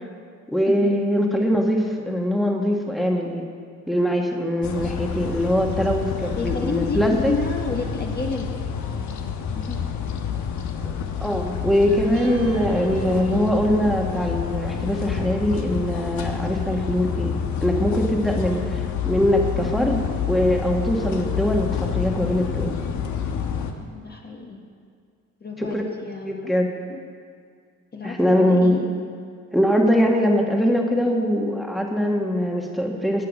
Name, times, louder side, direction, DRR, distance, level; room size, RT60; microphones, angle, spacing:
voice 1, 0.5-3.4 3.9-7.3 10.8-10.9 11.2-17.3 17.6-20.0 20.3-22.7 25.6-25.8 26.2-26.7 28.0-28.9 29.5-33.3, equal, ahead, 1 dB, 1.6 m, -22 dB
sound 1, 4.6-23.7, left 7 dB, 70° left, 1.2 m, -28 dB
voice 2, 6.4-9.1 9.6-9.8 23.8-24.6 25.4-26.5 26.9-27.0 27.9-28.9, left 3 dB, 35° left, 1 dB, 1.4 m, -31 dB
Guitar, 12.1-18.6, right 1 dB, 70° right, 2.3 m, -40 dB
14.5 x 9.1 x 5.3 m, 2.2 s
cardioid pair, 90°, 30 cm